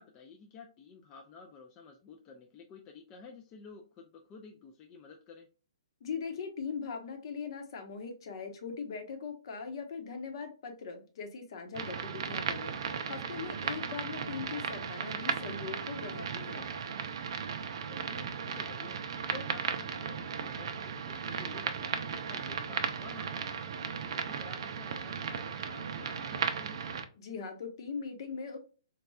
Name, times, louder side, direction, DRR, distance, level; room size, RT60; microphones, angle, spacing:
voice 1, 0.0-5.5 17.9-19.0 19.3-23.7 24.1-26.8, left 4 dB, 25° left, 2 dB, 0.4 m, -51 dB
voice 2, 6.0-16.7 27.2-28.6, left 5 dB, 55° left, 5 dB, 0.9 m, -40 dB
sound 1, 11.7-27.0, right 6 dB, 55° right, 0.5 m, -36 dB
4.0 x 2.3 x 2.3 m, 0.35 s
hypercardioid pair, 145°, 3 cm